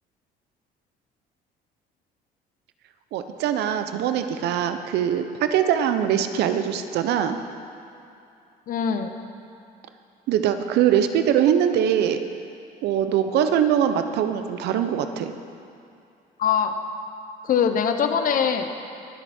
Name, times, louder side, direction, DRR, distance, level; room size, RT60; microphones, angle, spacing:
voice 1, 3.1-7.4 10.3-12.2 12.8-15.3, right 9 dB, 80° right, 9 dB, 0.8 m, -22 dB
voice 2, 8.7-9.1 16.4-16.7 17.4-18.7, left 7 dB, 55° left, 7 dB, 1.0 m, -22 dB
21.5 x 8.1 x 4.4 m, 2.6 s
cardioid pair, 110°, 17 cm